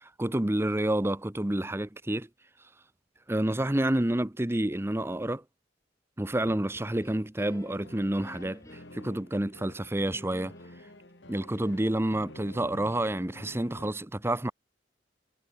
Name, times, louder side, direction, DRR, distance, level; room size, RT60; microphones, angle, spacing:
voice 1, 0.0-2.3 3.3-5.4 6.2-10.5 11.3-14.5, right 1 dB, 15° right, 0.8 m, -29 dB
sound 1, 6.5-9.2 10.1-12.1, equal, 15° left, 3.1 m, -51 dB
sound 2, 7.6-13.9, left 1 dB, 70° left, 4.5 m, -50 dB
head